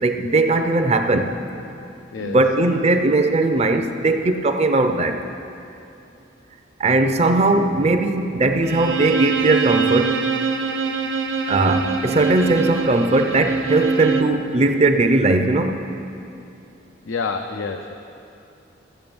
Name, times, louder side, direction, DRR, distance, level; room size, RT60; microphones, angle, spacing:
voice 1, 0.0-1.3 2.2-5.2 6.8-10.2 11.5-15.8, right 2 dB, 35° right, 7 dB, 0.6 m, -19 dB
Bowed string instrument, 8.6-14.4, right 4 dB, 80° right, 0.6 m, -24 dB
voice 2, 17.0-18.0, left 4 dB, 75° left, 5 dB, 0.5 m, -28 dB
14.0 x 7.7 x 5.2 m, 2.7 s
head